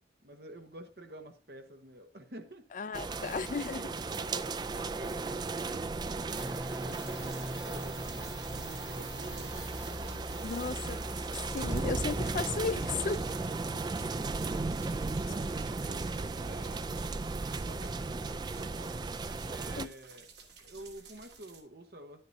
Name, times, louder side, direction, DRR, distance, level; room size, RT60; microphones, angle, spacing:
voice 1, 0.2-2.7 4.0-11.0 11.2-12.0 13.3-14.3 14.8-17.0 17.3-19.1 19.4-20.3 20.6-22.2, right 1 dB, 60° right, 1.2 m, -50 dB
voice 2, 2.7-4.0 10.4-11.0 11.3-13.3 19.8-19.9, left 5 dB, 45° left, 0.4 m, -35 dB
sound 1, 2.9-19.9, right 3 dB, 25° right, 0.3 m, -36 dB
sound 2, 6.3-14.7, equal, 5° right, 1.2 m, -43 dB
sound 3, 6.9-21.6, right 4 dB, 75° right, 1.9 m, -52 dB
10.5 x 10.0 x 2.7 m
head